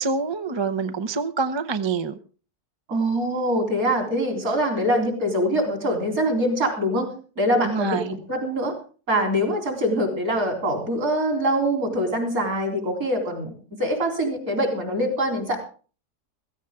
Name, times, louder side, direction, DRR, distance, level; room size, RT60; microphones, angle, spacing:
voice 1, 0.0-2.2 7.6-8.2, right 5 dB, 30° right, 0.5 m, -26 dB
voice 2, 2.9-7.1 7.4-8.7 9.1-13.5 13.8-15.6, equal, 60° right, 4.3 m, -24 dB
15.5 x 15.5 x 3.7 m
omnidirectional pair, 1.7 m